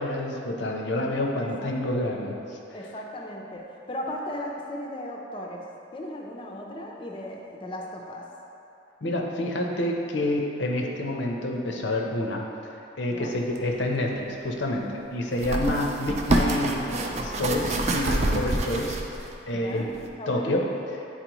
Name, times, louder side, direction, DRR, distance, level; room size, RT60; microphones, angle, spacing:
voice 1, 0.0-2.4 9.0-12.4 13.0-14.9 15.1-19.0 19.5-19.9 20.3-20.7, left 1 dB, 65° left, 1 dB, 0.7 m, -28 dB
voice 2, 1.4-2.0 2.7-5.6 5.9-8.2 13.1-13.3 15.5-15.9 18.5-18.7 19.5-20.6, left 1 dB, 25° left, -1 dB, 0.6 m, -37 dB
sound 1, 13.5-13.6 15.3-19.3 19.9-20.1, right 2 dB, 35° right, 0.4 m, -27 dB
9.1 x 4.1 x 3.0 m, 2.8 s
head